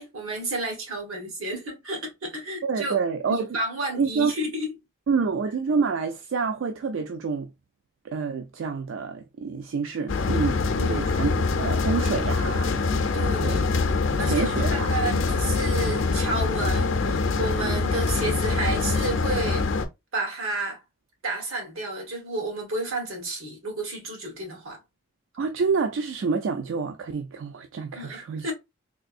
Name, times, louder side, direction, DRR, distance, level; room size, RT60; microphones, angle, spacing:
voice 1, 0.0-3.0 3.3-4.7 10.8-11.1 13.1-13.6 14.2-19.7 20.1-20.8 21.2-24.8 27.9-28.5, right 2 dB, 90° right, 1.4 m, -31 dB
voice 2, 2.6-3.5 4.0-4.3 5.1-7.5 8.0-10.6 10.9-13.6 14.1-14.9 17.6-17.8 25.4-28.4, right 5 dB, 65° right, 0.3 m, -28 dB
sound 1, 10.1-19.8, left 3 dB, 65° left, 0.5 m, -24 dB
3.7 x 2.6 x 2.4 m
head